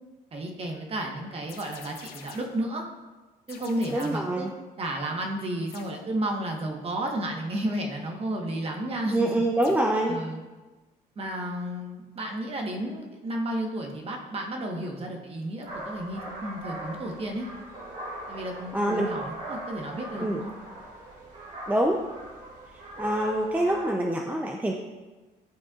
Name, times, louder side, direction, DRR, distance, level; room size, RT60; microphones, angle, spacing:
voice 1, 0.3-2.8 3.5-4.5 4.8-9.3 10.1-10.4 11.2-17.5 18.3-20.5, right 1 dB, 35° right, 1 dB, 1.2 m, -32 dB
sound 1, 1.5-2.6 3.5-4.4 5.7-6.1 9.6-10.0, left 6 dB, 65° left, 0.9 m, -47 dB
voice 2, 3.8-4.5 9.1-10.2 18.7-19.1 20.2-20.4 21.7-22.0 23.0-24.7, right 1 dB, 10° right, 1 dB, 0.5 m, -25 dB
sound 2, 15.6-23.9, right 1 dB, 50° right, 2.0 m, -40 dB
11.5 x 4.2 x 2.4 m, 1.2 s
cardioid pair, 110°, 17 cm